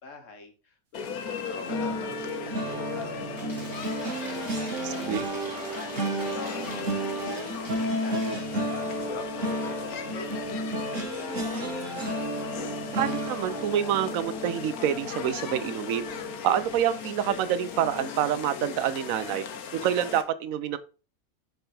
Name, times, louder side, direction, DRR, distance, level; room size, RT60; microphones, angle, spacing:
voice 1, 0.0-12.2, left 3 dB, 60° left, 5 dB, 1.4 m, -47 dB
sound 1, 0.9-20.2, left 7 dB, 90° left, 1.3 m, -37 dB
sound 2, 1.7-16.8 17.2-17.5 17.8-18.0, right 1 dB, 60° right, 1.8 m, -33 dB
Cheering / Applause / Crowd, 3.3-8.6, right 1 dB, 15° right, 1.9 m, -43 dB
voice 2, 4.8-5.2 12.9-16.1 16.4-19.4 19.7-20.8, right 10 dB, 75° right, 13 dB, 1.0 m, -27 dB
5.6 x 3.9 x 4.2 m, 0.34 s
omnidirectional pair, 1.5 m